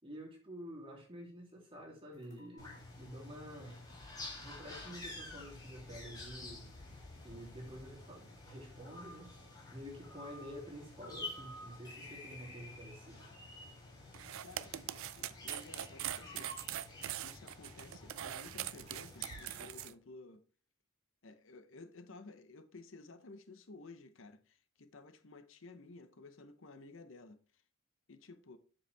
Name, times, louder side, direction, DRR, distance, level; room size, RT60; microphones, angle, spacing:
voice 1, 0.0-3.8 4.4-6.7 7.2-9.3 9.7-13.2, equal, 25° right, 3.0 m, -49 dB
sound 1, 2.1-2.8 3.5-3.6 3.9-8.1, left 1 dB, 35° left, 2.3 m, -58 dB
sound 2, 2.6-19.9, left 2 dB, 20° left, 3.0 m, -50 dB
sound 3, 14.1-19.9, right 12 dB, 75° right, 0.4 m, -42 dB
voice 2, 14.4-16.7 17.0-20.4 21.2-27.6 28.1-28.6, left 3 dB, 65° left, 0.8 m, -54 dB
8.1 x 7.0 x 3.4 m
head